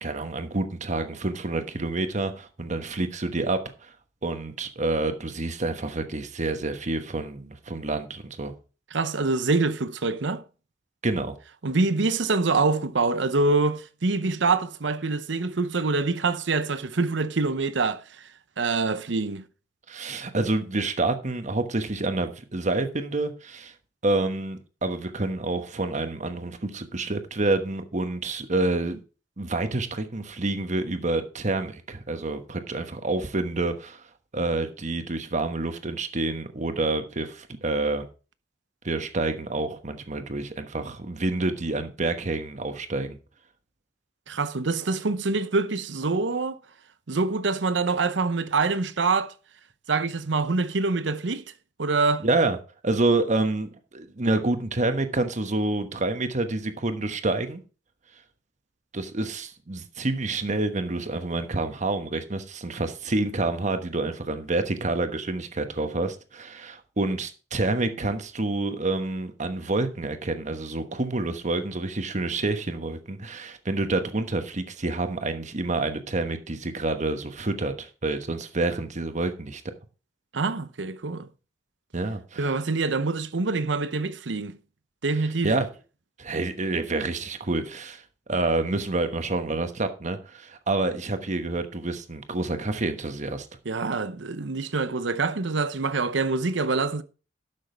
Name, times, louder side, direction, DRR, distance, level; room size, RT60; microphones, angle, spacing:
voice 1, 0.0-3.7 4.2-8.5 11.0-11.4 19.9-23.7 24.0-29.0 29.4-34.0 34.3-38.1 38.8-43.2 52.2-52.6 52.8-57.6 58.9-79.6 81.9-82.5 85.4-85.7 86.2-88.0 88.3-93.5, right 2 dB, 40° right, 1.2 m, -28 dB
voice 2, 8.9-10.4 11.6-18.0 18.6-19.4 44.3-46.6 47.1-49.3 49.9-51.4 51.8-52.2 80.3-81.3 82.4-84.6 85.0-85.5 93.7-97.0, right 3 dB, 70° right, 0.8 m, -25 dB
12.0 x 6.4 x 4.4 m
head